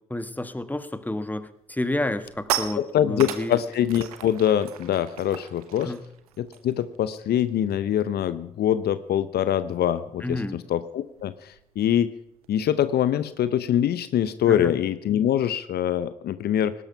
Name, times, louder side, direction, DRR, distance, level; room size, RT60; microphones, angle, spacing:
voice 1, 0.1-3.6 5.8-6.0 10.2-10.6 14.5-14.7, left 1 dB, 10° left, 12 dB, 1.4 m, -30 dB
sound 1, 1.1-1.4 1.7-7.7 7.9-8.2 8.5-13.5, right 10 dB, 90° right, 1.0 m, -37 dB
voice 2, 2.7-5.9 6.4-12.1 12.5-16.7, left 10 dB, 60° left, 14 dB, 0.8 m, -24 dB
19.0 x 11.0 x 5.8 m, 0.81 s
hypercardioid pair, 45°, 18 cm